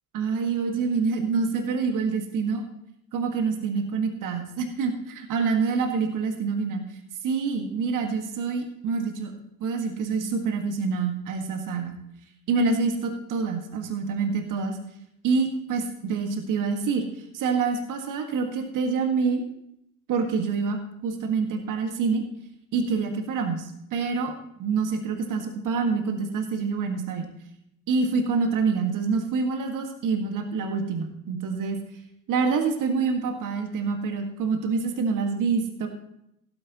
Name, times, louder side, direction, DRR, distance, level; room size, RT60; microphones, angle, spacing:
voice 1, 0.1-2.6 3.1-6.8 7.2-9.3 9.6-12.0 12.5-14.8 15.2-17.0 17.3-19.4 20.1-22.2 22.7-24.3 24.6-27.3 27.9-31.8 32.3-35.9, right 4 dB, 50° right, 4 dB, 1.9 m, -26 dB
15.5 x 9.0 x 3.0 m, 0.77 s
figure-of-eight pair, 55°, 41 cm